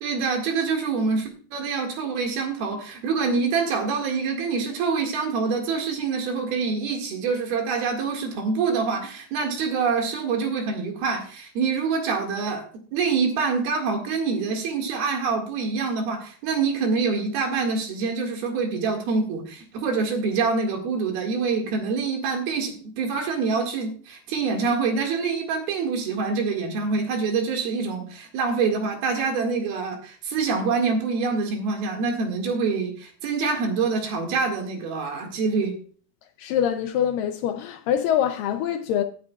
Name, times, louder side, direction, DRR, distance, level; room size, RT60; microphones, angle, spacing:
voice 1, 0.0-12.7 12.9-35.8, right 4 dB, 80° right, 3.9 m, -26 dB
voice 2, 36.4-39.0, left 9 dB, 80° left, 2.0 m, -24 dB
16.0 x 9.4 x 2.4 m
omnidirectional pair, 4.4 m